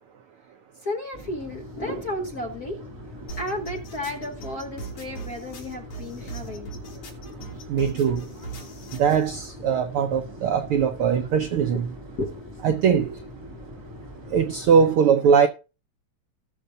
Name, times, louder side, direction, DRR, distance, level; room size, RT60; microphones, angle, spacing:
voice 1, 0.8-2.8 3.4-6.8 11.7-11.8 12.2-12.3, left 1 dB, 50° left, 1.1 m, -33 dB
sound 1, 1.1-14.9, equal, 10° right, 2.3 m, -42 dB
sound 2, 3.3-9.3, right 4 dB, 70° left, 4.2 m, -39 dB
voice 2, 7.7-8.2 9.0-11.9 12.6-13.2 14.3-15.5, right 7 dB, 85° right, 1.2 m, -21 dB
18.5 x 6.7 x 2.7 m
omnidirectional pair, 3.3 m